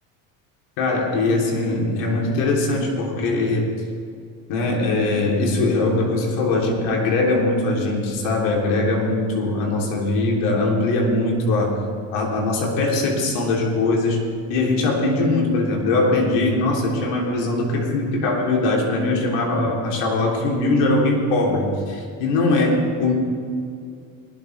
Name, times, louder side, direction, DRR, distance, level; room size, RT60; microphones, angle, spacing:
voice 1, 0.8-3.7 4.5-11.8 12.1-14.2 14.5-23.1, left 2 dB, 70° left, -1 dB, 3.3 m, -21 dB
20.0 x 12.0 x 3.3 m, 2.4 s
hypercardioid pair, 80°, 41 cm